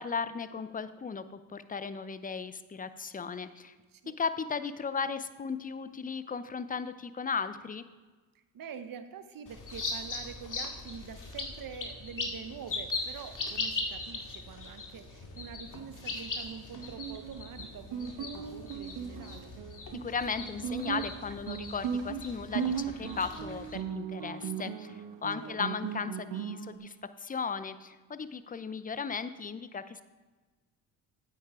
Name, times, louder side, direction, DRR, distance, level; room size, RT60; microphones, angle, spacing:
voice 1, 0.0-3.7 4.2-7.8 19.9-26.9 27.2-30.0, left 5 dB, 20° left, 13 dB, 0.6 m, -36 dB
voice 2, 8.5-19.5 25.4-25.6, right 7 dB, 45° right, 10 dB, 1.1 m, -46 dB
sound 1, 9.5-23.8, left 3 dB, 40° left, 2.1 m, -40 dB
Guitar, 16.7-26.8, right 7 dB, 60° right, 1.1 m, -37 dB
9.8 x 8.7 x 3.7 m, 1.3 s
hypercardioid pair, 55°, 48 cm